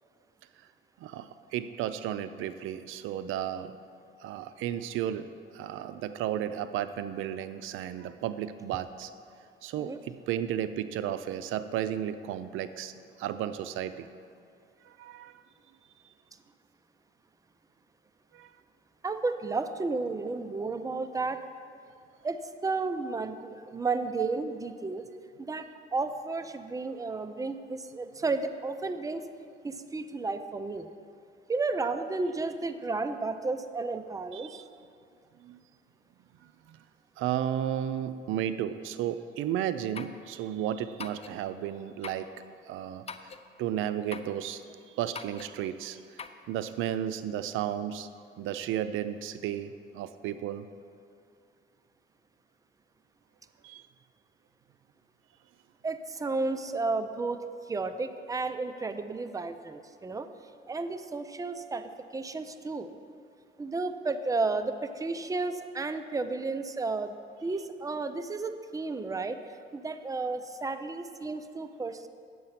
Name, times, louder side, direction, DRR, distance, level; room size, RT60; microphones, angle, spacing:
voice 1, 1.0-3.7 4.2-5.3 5.5-9.1 9.6-12.9 13.2-14.1 14.8-15.3 18.3-18.5 24.2-24.3 34.3-34.6 35.4-35.6 36.7-36.8 37.2-42.3 42.6-43.0 43.6-44.6 45.0-46.0 46.5-48.1 48.4-50.7 53.6-53.8, right 10 dB, 85° right, 12 dB, 0.4 m, -33 dB
voice 2, 19.0-21.4 22.2-25.0 25.4-29.3 29.6-30.9 31.5-34.6 55.8-60.3 60.7-62.9 63.6-67.1 67.4-69.4 69.7-72.1, right 3 dB, 15° right, 9 dB, 0.5 m, -32 dB
sound 1, 39.9-40.2 41.0-41.4 42.0-42.3 43.1-43.5 44.1-44.4 45.1-45.5 46.2-46.4, left 6 dB, 30° left, 0.5 m, -42 dB
9.4 x 7.6 x 5.8 m, 2.3 s
cardioid pair, 90°, 20 cm